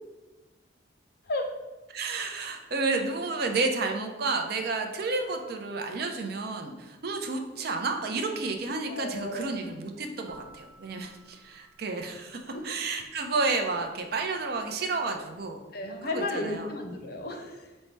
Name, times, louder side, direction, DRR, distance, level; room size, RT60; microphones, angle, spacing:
voice 1, 1.9-12.4 12.6-15.6 16.0-16.7, right 3 dB, 55° right, 4 dB, 0.5 m, -31 dB
voice 2, 8.9-9.5 12.5-12.6 15.7-17.7, left 2 dB, 55° left, 4 dB, 0.6 m, -33 dB
sound 1, 10.3-13.0, right 2 dB, 15° left, 0.7 m, -55 dB
5.3 x 2.1 x 4.5 m, 1.1 s
head